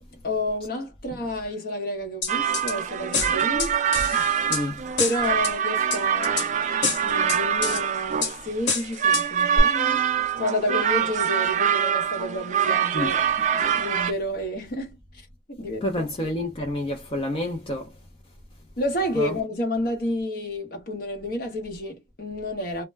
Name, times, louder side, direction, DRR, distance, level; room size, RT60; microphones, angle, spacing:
voice 1, 0.2-4.6 5.0-10.0 10.4-15.3 15.6-16.0 18.8-22.8, left 1 dB, 55° left, 1.0 m, -30 dB
sound 1, 2.2-2.7 3.1-4.6 5.0-5.5 5.9-6.5 6.8-7.8 8.2-8.3 8.7-9.2 9.6-9.7, left 4 dB, 80° left, 1.1 m, -27 dB
sound 2, 2.3-14.1, right 8 dB, 40° right, 0.4 m, -24 dB
voice 2, 4.5-4.8 12.9-13.1 15.8-17.8 19.1-19.3, left 1 dB, 30° left, 0.5 m, -28 dB
2.1 x 2.1 x 3.3 m
head